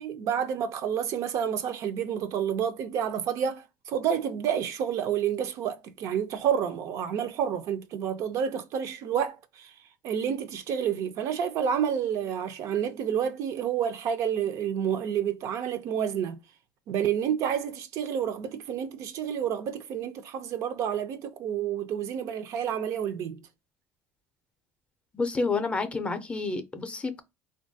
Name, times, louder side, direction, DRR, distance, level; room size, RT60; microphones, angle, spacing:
voice 1, 0.0-9.7 10.0-16.4 16.9-23.4, right 8 dB, 60° right, 0.4 m, -29 dB
voice 2, 25.1-27.2, left 3 dB, 20° left, 0.5 m, -29 dB
2.9 x 2.2 x 2.6 m
supercardioid pair, 100°, 6 cm